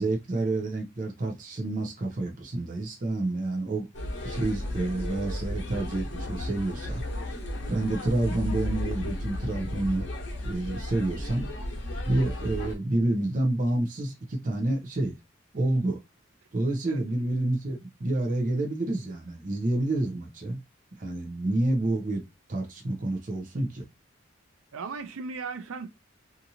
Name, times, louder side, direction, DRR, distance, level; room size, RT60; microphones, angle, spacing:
voice 1, 0.0-3.9 4.2-7.0 7.7-10.1 10.4-11.5 12.1-15.2 15.5-16.0 16.5-20.6 21.0-22.2 22.5-23.8, right 2 dB, 40° right, 0.6 m, -28 dB
sound 1, 3.9-12.8, left 1 dB, 60° left, 0.9 m, -34 dB
voice 2, 24.7-25.9, right 4 dB, 85° right, 0.5 m, -36 dB
2.7 x 2.5 x 2.7 m
head